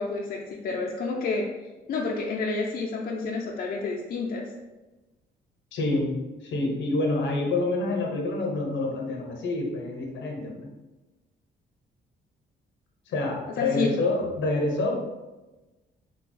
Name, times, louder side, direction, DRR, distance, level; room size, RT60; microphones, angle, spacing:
voice 1, 0.0-1.5 1.9-4.4 13.6-13.9, left 3 dB, 50° left, -3 dB, 0.6 m, -29 dB
voice 2, 5.7-10.7 13.1-15.0, left 2 dB, 70° left, 1 dB, 0.8 m, -27 dB
3.3 x 2.3 x 3.8 m, 1.1 s
cardioid pair, 90°, 20 cm